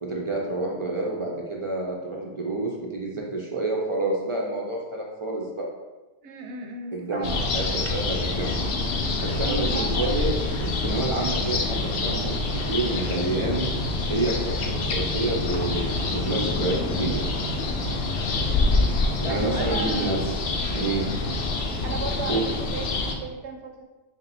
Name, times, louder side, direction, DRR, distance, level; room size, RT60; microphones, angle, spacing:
voice 1, 0.0-5.7 6.9-8.6 9.2-10.3 10.6-12.3 12.7-13.7 14.1-17.2 18.9-20.2 20.7-21.1 22.3-22.4, right 2 dB, 45° right, -2 dB, 0.4 m, -28 dB
voice 2, 6.2-7.5 9.4-10.2 17.8-18.1 19.0-20.2 21.8-23.9, right 4 dB, 75° right, 3 dB, 0.9 m, -35 dB
sound 1, 7.2-23.2, left 3 dB, 65° left, 0.7 m, -26 dB
3.3 x 2.8 x 4.1 m, 1.2 s
omnidirectional pair, 1.2 m